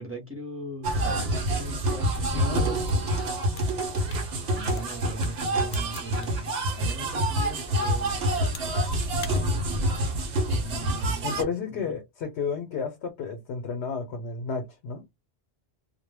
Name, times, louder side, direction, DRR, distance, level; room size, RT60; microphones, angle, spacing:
voice 1, 0.0-3.1 4.2-8.3 10.6-11.9, equal, 15° right, 0.7 m, -40 dB
sound 1, 0.8-11.4, right 1 dB, 70° right, 0.9 m, -27 dB
sound 2, 2.8-7.1 7.5-8.8 9.1-9.4, left 7 dB, 65° left, 0.7 m, -46 dB
voice 2, 11.2-15.0, left 5 dB, 85° left, 0.9 m, -32 dB
2.1 x 2.1 x 3.2 m
omnidirectional pair, 1.1 m